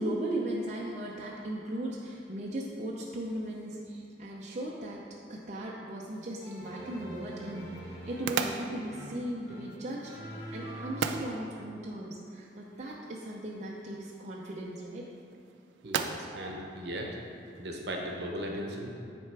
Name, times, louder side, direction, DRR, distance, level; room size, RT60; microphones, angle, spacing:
voice 1, 0.0-10.1 10.5-15.1 15.8-16.0, right 1 dB, 40° right, -4 dB, 0.5 m, -37 dB
sound 1, 6.1-17.8, right 6 dB, 85° right, 0.4 m, -40 dB
sound 2, 6.4-11.5, right 1 dB, 60° left, 1.4 m, -44 dB
voice 2, 15.8-17.2 17.6-18.9, equal, 65° right, 0 dB, 0.9 m, -37 dB
9.7 x 3.4 x 4.6 m, 2.5 s
head